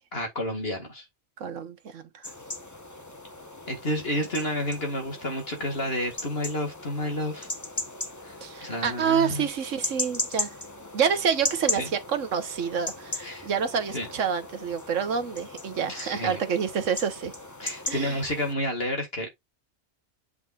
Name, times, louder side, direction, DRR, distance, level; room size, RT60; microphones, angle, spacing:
voice 1, 0.1-1.0 3.7-7.5 8.2-9.5 11.8-11.9 13.2-13.5 13.9-14.1 15.9-16.4 17.6-19.3, equal, 45° left, 2.3 m, -30 dB
voice 2, 1.4-2.3 8.4-10.5 10.9-17.3 17.9-18.2, right 7 dB, 65° right, 1.4 m, -28 dB
sound 1, 2.2-18.5, left 2 dB, 15° left, 0.8 m, -37 dB
7.5 x 5.9 x 2.4 m
omnidirectional pair, 1.4 m